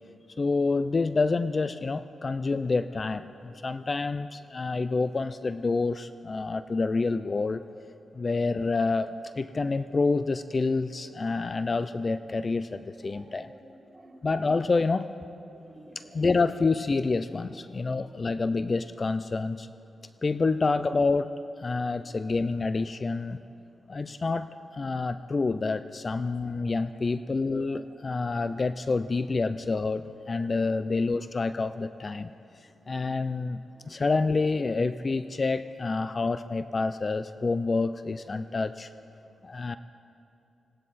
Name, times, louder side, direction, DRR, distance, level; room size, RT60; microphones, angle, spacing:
voice 1, 0.4-7.6 8.1-13.5 14.2-15.1 16.0-19.7 20.2-21.3 21.6-23.4 23.9-32.3 32.6-38.9 39.4-39.8, left 3 dB, 35° left, 12 dB, 0.4 m, -28 dB
voice 2, 13.0-14.3 15.6-16.2 30.4-30.5, right 1 dB, 20° right, 3 dB, 1.7 m, -52 dB
18.5 x 18.5 x 4.1 m, 2.6 s
cardioid pair, 85°, 0 cm